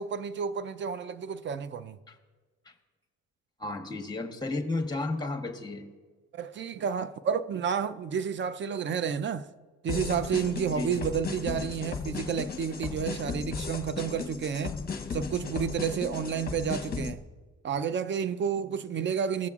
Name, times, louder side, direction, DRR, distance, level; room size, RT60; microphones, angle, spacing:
voice 1, 0.0-2.0 6.3-9.5 9.8-14.8 15.1-17.2 17.6-19.5, right 7 dB, 40° right, 0.5 m, -30 dB
voice 2, 3.6-5.9 10.6-11.0, left 2 dB, 15° left, 1.1 m, -33 dB
sound 1, 9.9-17.1, left 5 dB, 30° left, 0.9 m, -35 dB
17.0 x 6.9 x 2.4 m
cardioid pair, 90°, 30 cm